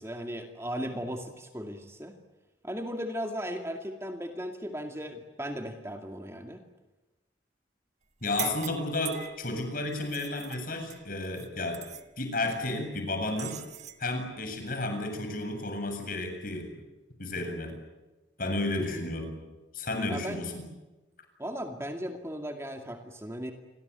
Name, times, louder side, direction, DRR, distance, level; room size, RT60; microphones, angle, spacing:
voice 1, 0.0-2.2 2.6-6.6 8.4-8.6 18.8-19.1 20.1-20.5 21.4-23.5, equal, 15° right, 5 dB, 2.3 m, -37 dB
voice 2, 8.2-11.8 12.2-13.6 14.0-16.7 17.2-17.7 18.4-19.4 19.7-20.7, left 2 dB, 50° left, 5 dB, 7.4 m, -32 dB
sound 1, 8.2-9.5 9.9-11.5 11.7-12.1 13.4-14.0, right 11 dB, 40° right, 1.5 m, -41 dB
29.0 x 23.5 x 8.2 m, 1.1 s
head